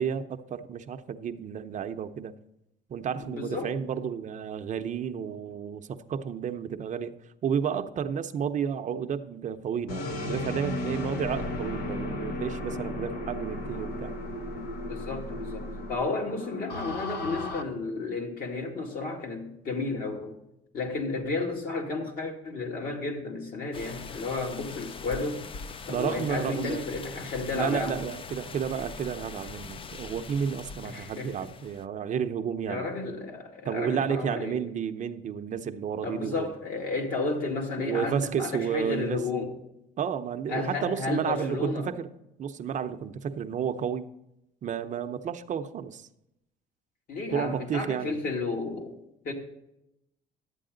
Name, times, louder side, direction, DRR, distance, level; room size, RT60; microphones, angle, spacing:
voice 1, 0.0-2.3 2.9-7.1 7.4-14.1 25.9-26.8 27.5-32.9 33.6-36.5 37.8-39.2 40.0-42.1 42.4-44.1 44.6-46.1 47.3-48.2, right 7 dB, 45° right, 0.6 m, -31 dB
voice 2, 3.3-3.7 14.9-20.4 20.7-25.4 25.9-28.0 30.8-31.5 32.7-34.6 36.0-39.5 40.5-41.9 47.1-48.9 49.2-49.3, left 3 dB, 60° left, 2.4 m, -32 dB
sound 1, 9.9-17.6, left 2 dB, 80° left, 1.0 m, -35 dB
sound 2, 23.7-31.9, left 5 dB, 30° left, 0.4 m, -42 dB
11.5 x 8.3 x 3.9 m
cardioid pair, 110°, 17 cm